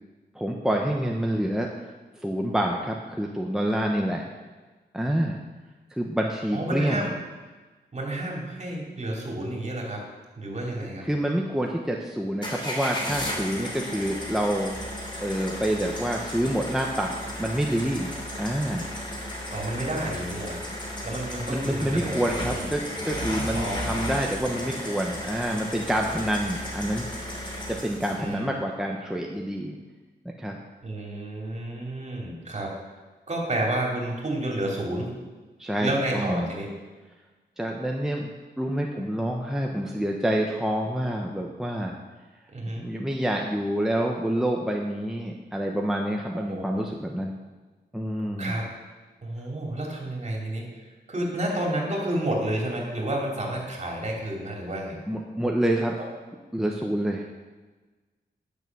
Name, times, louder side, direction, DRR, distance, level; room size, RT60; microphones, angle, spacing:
voice 1, 0.3-1.7 2.2-4.3 4.9-5.4 5.9-7.0 11.0-14.7 15.2-17.1 17.4-18.9 21.5-27.1 27.7-29.7 30.2-30.6 35.6-36.5 37.6-38.3 38.6-41.9 42.8-47.3 47.9-48.6 55.1-55.9 56.5-57.3, right 1 dB, 5° right, 0 dB, 1.0 m, -27 dB
voice 2, 6.5-7.1 7.9-10.0 10.4-11.0 19.5-20.6 21.0-22.6 23.5-23.9 28.2-28.7 30.8-32.7 33.3-35.1 35.8-36.7 42.5-42.9 46.4-46.8 48.4-48.6 49.2-50.7 51.1-55.0, right 1 dB, 40° right, -1 dB, 3.3 m, -30 dB
sound 1, 12.4-28.3, left 1 dB, 25° left, 3.1 m, -34 dB
10.5 x 7.0 x 6.2 m, 1.3 s
cardioid pair, 80°, 18 cm